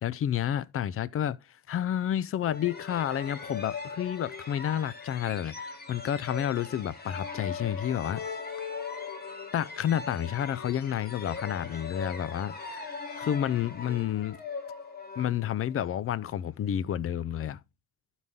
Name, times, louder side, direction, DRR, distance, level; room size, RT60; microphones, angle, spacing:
voice 1, 0.0-1.4 1.7-8.2 9.5-14.4 15.2-17.6, left 10 dB, 50° left, 0.5 m, -30 dB
sound 1, 2.4-15.9, left 5 dB, 30° left, 2.0 m, -40 dB
12.0 x 4.1 x 3.6 m
cardioid pair, 90°, 30 cm